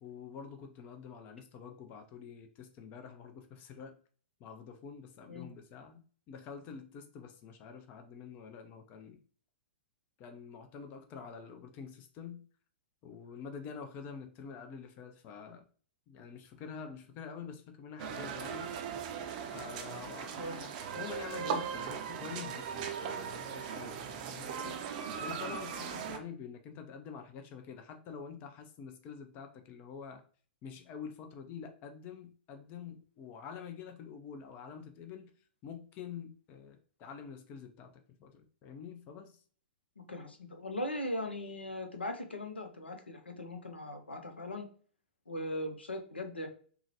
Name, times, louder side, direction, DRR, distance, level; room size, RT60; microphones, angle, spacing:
voice 1, 0.0-4.0 4.4-9.2 10.2-12.5 13.0-15.6 16.1-18.7 19.4-24.8 25.2-30.2 30.6-35.3 35.6-39.4, left 6 dB, 30° left, 6 dB, 0.4 m, -47 dB
sound 1, 18.0-26.2, right 7 dB, 45° right, 0.5 m, -39 dB
voice 2, 25.1-25.5 40.0-44.7 45.3-46.5, left 1 dB, 80° left, 5 dB, 0.6 m, -39 dB
3.7 x 2.1 x 2.9 m, 0.43 s
figure-of-eight pair, 105°, 6 cm